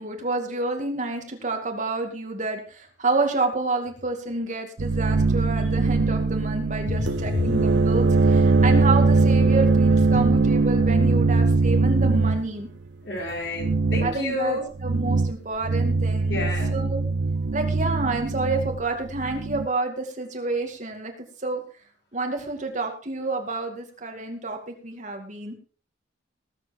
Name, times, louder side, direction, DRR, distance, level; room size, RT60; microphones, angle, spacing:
voice 1, 0.0-12.7 14.0-16.4 16.7-17.0 17.5-21.1 21.4-21.6 22.1-25.5, right 3 dB, 40° right, 4 dB, 2.4 m, -29 dB
sound 1, 4.8-12.5 13.5-14.2 14.8-15.4 15.6-19.7, right 3 dB, 70° right, 0.6 m, -21 dB
voice 2, 13.0-14.6 16.3-16.9, left 2 dB, 65° left, 1 dB, 4.3 m, -29 dB
19.5 x 7.9 x 4.4 m, 0.39 s
head